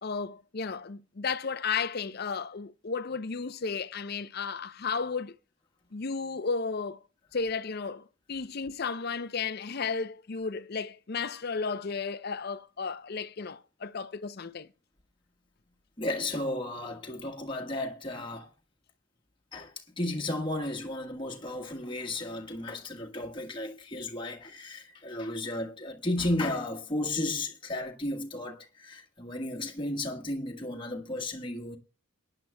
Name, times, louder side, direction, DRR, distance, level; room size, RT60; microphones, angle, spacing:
voice 1, 0.0-5.3 5.9-7.0 7.3-14.7, left 5 dB, 45° left, 0.5 m, -33 dB
voice 2, 16.0-18.5 19.5-31.8, left 1 dB, 20° left, 1.4 m, -34 dB
23.0 x 9.9 x 2.2 m
head